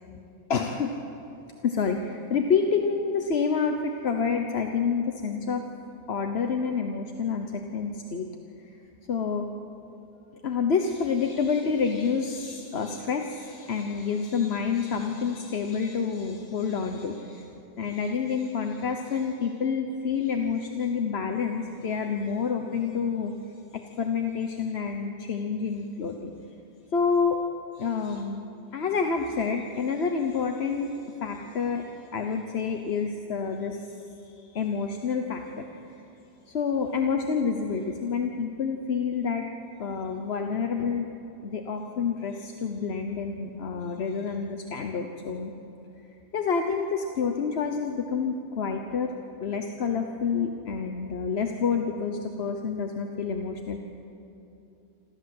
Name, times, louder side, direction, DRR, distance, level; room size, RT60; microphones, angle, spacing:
voice 1, 0.5-0.9 1.6-5.6 6.1-7.5 7.7-8.3 9.1-9.5 10.4-17.4 17.8-23.3 24.0-26.3 26.9-27.4 27.8-28.4 28.7-30.9 31.2-31.8 32.1-33.8 34.5-35.4 36.5-39.4 39.8-41.1 41.4-45.5 46.3-49.1 49.4-53.8, left 5 dB, 45° left, 4 dB, 1.1 m, -28 dB
27.5 x 14.0 x 7.8 m, 2.9 s
omnidirectional pair, 1.7 m